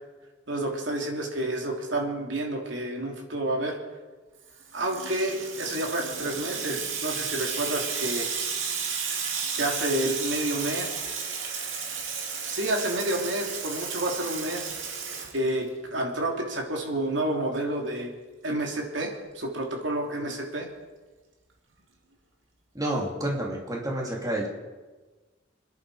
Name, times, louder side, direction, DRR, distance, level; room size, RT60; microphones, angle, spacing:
voice 1, 0.5-3.7 4.7-8.3 9.6-11.0 12.4-14.7 15.3-18.1 18.4-20.7, right 1 dB, 70° right, 1 dB, 3.0 m, -29 dB
Water tap faucet / Sink (filling or washing), 4.5-15.9, right 6 dB, 85° right, 2.3 m, -33 dB
voice 2, 22.7-24.5, right 1 dB, 20° right, -2 dB, 2.9 m, -29 dB
26.5 x 10.5 x 4.9 m, 1.3 s
head